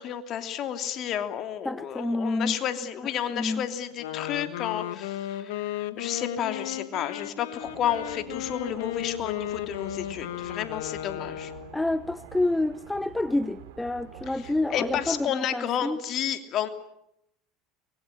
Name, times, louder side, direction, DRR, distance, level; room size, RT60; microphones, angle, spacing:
voice 1, 0.0-11.5 14.4-16.7, left 10 dB, 50° left, 3.0 m, -31 dB
voice 2, 1.6-2.6 3.3-3.7 11.7-16.0, left 2 dB, 10° left, 0.9 m, -28 dB
Wind instrument woodwind instrument, 3.9-11.8, left 12 dB, 75° left, 1.6 m, -35 dB
sound 1, 7.6-15.2, right 10 dB, 75° right, 2.9 m, -47 dB
24.0 x 22.0 x 9.9 m
hypercardioid pair, 80°, 0 cm